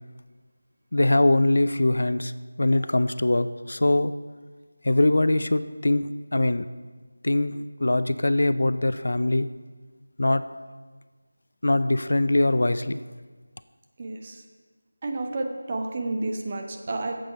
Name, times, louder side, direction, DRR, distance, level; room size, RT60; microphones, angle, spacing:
voice 1, 0.9-2.3 2.6-4.1 4.8-6.7 7.2-9.5 10.2-10.5 11.6-13.0, left 1 dB, 65° left, 13 dB, 0.4 m, -22 dB
voice 2, 14.0-14.4 15.0-17.1, right 2 dB, 25° right, 4 dB, 0.6 m, -30 dB
8.9 x 7.9 x 4.3 m, 1.4 s
figure-of-eight pair, 175°, 0 cm